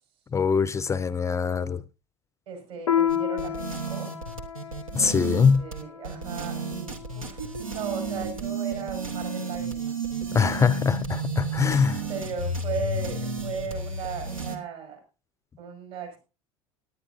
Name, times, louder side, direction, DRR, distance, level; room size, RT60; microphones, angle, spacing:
voice 1, 0.3-1.8 4.9-5.6 10.3-12.0, left 6 dB, 15° left, 0.5 m, -23 dB
voice 2, 2.5-4.1 5.0-5.2 5.6-10.0 11.9-15.0 15.6-16.2, right 5 dB, 60° right, 5.5 m, -36 dB
Piano, 2.9-7.8, left 9 dB, 80° left, 0.6 m, -31 dB
sound 1, 3.1-14.6, right 3 dB, 80° right, 1.5 m, -32 dB
18.5 x 10.0 x 2.7 m
figure-of-eight pair, 75°, 17 cm